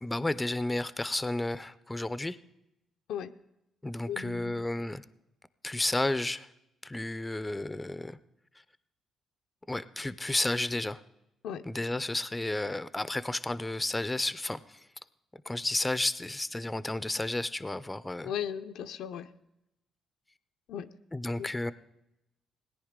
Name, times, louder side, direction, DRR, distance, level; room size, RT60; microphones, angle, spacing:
voice 1, 0.0-2.4 3.8-5.0 5.6-6.5 6.8-8.2 9.7-11.0 11.7-14.8 15.5-18.3 21.1-21.7, left 2 dB, 15° left, 15 dB, 0.5 m, -32 dB
voice 2, 4.1-4.6 11.4-11.6 18.2-19.3 20.7-20.9 21.4-21.7, left 9 dB, 80° left, 8 dB, 0.5 m, -37 dB
17.5 x 10.0 x 3.7 m, 0.88 s
cardioid pair, 90°, 0 cm